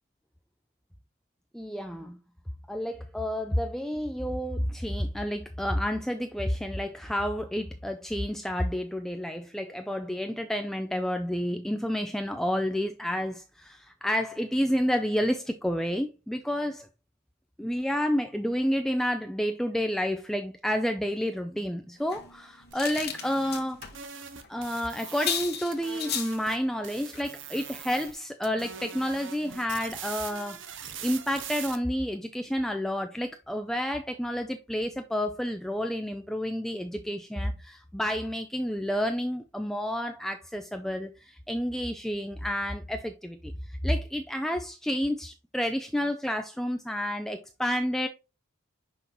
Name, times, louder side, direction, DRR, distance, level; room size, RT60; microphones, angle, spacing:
voice 1, 1.5-2.2 2.7-16.9 17.6-23.8 24.5-48.1, equal, ahead, 0.3 m, -30 dB
sound 1, 22.1-24.0 24.3-24.5 24.7-24.8 25.0-26.4 27.1-27.3 27.7-27.8 28.1-28.2, left 8 dB, 50° left, 0.9 m, -35 dB
sound 2, 22.7-26.6 26.8-28.2 28.4-31.8, right 8 dB, 60° right, 0.7 m, -42 dB
5.8 x 5.4 x 3.0 m
head